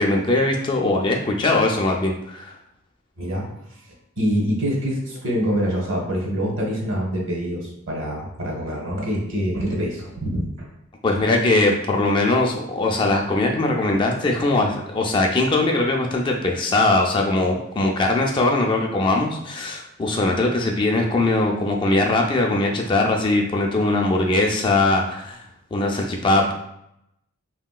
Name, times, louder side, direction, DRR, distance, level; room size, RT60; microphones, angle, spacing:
voice 1, 0.0-2.6 11.0-25.4 25.7-26.5, left 2 dB, 25° left, 1 dB, 0.3 m, -21 dB
voice 2, 3.2-3.5 4.2-10.7, equal, 65° right, -1 dB, 0.9 m, -25 dB
3.0 x 2.8 x 2.2 m, 0.80 s
head